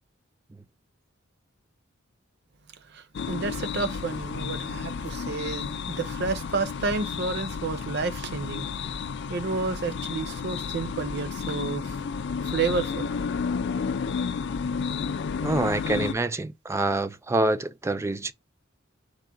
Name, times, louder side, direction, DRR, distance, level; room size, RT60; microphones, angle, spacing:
voice 1, 2.9-8.7 9.3-12.0 12.4-13.1, right 4 dB, 55° right, 0.6 m, -30 dB
sound 1, 3.1-16.1, left 5 dB, 60° left, 0.4 m, -32 dB
voice 2, 15.4-18.3, right 2 dB, 15° right, 0.3 m, -26 dB
4.7 x 2.1 x 3.7 m
head